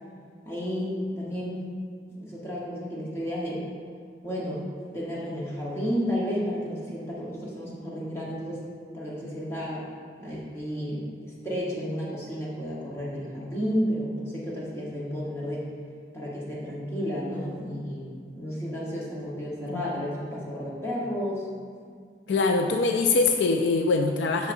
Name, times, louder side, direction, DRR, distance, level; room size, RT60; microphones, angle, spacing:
voice 1, 0.4-1.6 2.2-3.6 4.2-4.7 4.9-8.6 8.9-9.8 10.2-15.7 16.1-21.5, equal, 15° left, -7 dB, 1.1 m, -32 dB
voice 2, 22.3-24.5, left 3 dB, 90° left, 4 dB, 0.4 m, -23 dB
8.1 x 6.2 x 2.6 m, 2.1 s
head